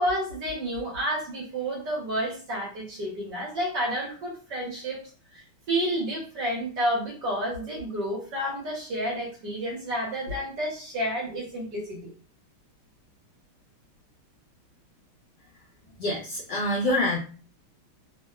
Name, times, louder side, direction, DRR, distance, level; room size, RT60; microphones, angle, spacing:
voice 1, 0.0-5.0 5.7-12.1, equal, 60° right, -4 dB, 1.2 m, -30 dB
voice 2, 16.0-17.2, left 1 dB, 70° left, -4 dB, 1.1 m, -26 dB
3.5 x 2.0 x 2.3 m, 0.38 s
omnidirectional pair, 2.4 m